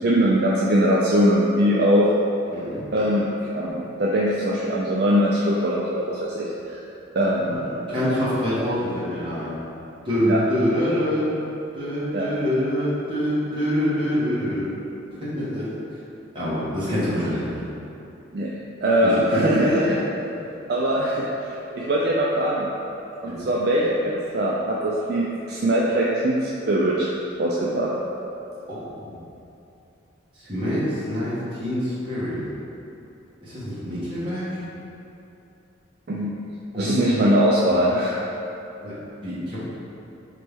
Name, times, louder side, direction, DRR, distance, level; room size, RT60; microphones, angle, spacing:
voice 1, 0.0-2.1 2.9-6.8 7.2-7.6 7.9-8.1 10.3-10.4 12.1-12.3 18.3-18.5 18.8-20.0 20.7-22.7 23.2-27.1 27.4-27.9 36.1-36.3 36.7-38.2, equal, 50° right, -5 dB, 0.4 m, -21 dB
voice 2, 2.5-2.8 7.4-9.5 10.0-11.3 11.7-14.7 15.2-15.7 16.3-17.5 19.0-19.9 23.3-23.5 28.7-29.1 30.5-32.4 33.4-34.6 36.7-37.2 38.8-38.9 39.2-39.6, equal, 25° right, -11 dB, 1.3 m, -25 dB
4.1 x 3.3 x 3.4 m, 2.8 s
head